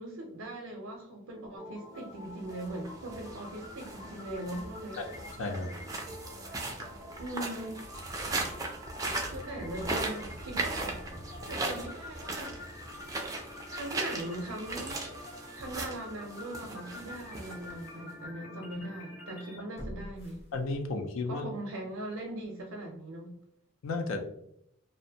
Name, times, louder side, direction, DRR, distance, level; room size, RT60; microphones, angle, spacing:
voice 1, 0.0-5.0 6.4-6.5 7.2-7.9 9.3-11.0 11.5-12.8 13.7-15.1 15.5-20.4 21.3-23.3, right 1 dB, 80° right, 2 dB, 0.5 m, -40 dB
sound 1, 1.6-19.6, left 2 dB, 90° left, 1.3 m, -48 dB
sound 2, 2.4-18.1, right 2 dB, 15° right, 0.3 m, -38 dB
voice 2, 5.4-5.7 20.5-21.5 23.8-24.2, left 3 dB, 70° left, 5 dB, 0.4 m, -33 dB
sound 3, 19.7-21.2 21.6-21.7, equal, 30° left, 0.8 m, -45 dB
2.5 x 2.0 x 2.7 m, 0.77 s
head